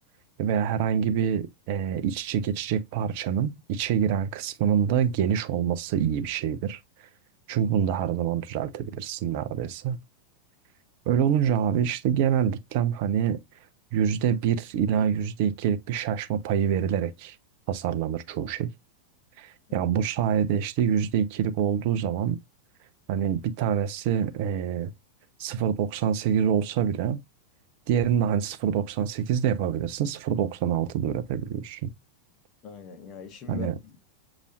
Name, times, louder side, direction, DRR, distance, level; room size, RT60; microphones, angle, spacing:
voice 1, 0.4-6.8 7.5-10.0 11.1-13.4 13.9-17.4 17.7-18.7 19.4-22.4 23.1-24.9 25.4-27.2 27.9-31.9 33.5-33.7, right 8 dB, 45° right, 0.6 m, -26 dB
voice 2, 32.6-34.0, left 9 dB, 35° left, 1.2 m, -41 dB
6.7 x 3.0 x 2.5 m
figure-of-eight pair, 90°, 0 cm